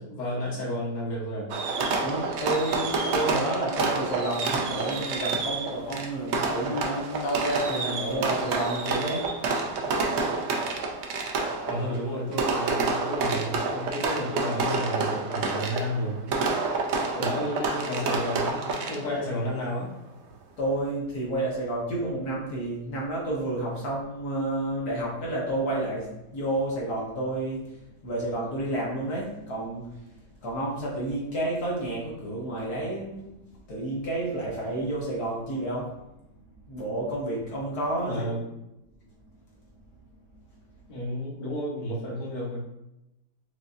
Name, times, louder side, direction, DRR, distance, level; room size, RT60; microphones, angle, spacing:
voice 1, 0.0-1.5 11.7-16.1 17.1-19.9 38.0-38.4 40.9-42.6, equal, 30° left, -6 dB, 1.1 m, -31 dB
Fireworks, 1.5-19.3, right 3 dB, 90° right, 0.6 m, -28 dB
voice 2, 2.0-9.6 20.6-33.3 33.7-35.9 36.7-38.3, right 1 dB, 65° left, -5 dB, 1.5 m, -30 dB
5.2 x 2.7 x 2.5 m, 0.91 s
omnidirectional pair, 1.8 m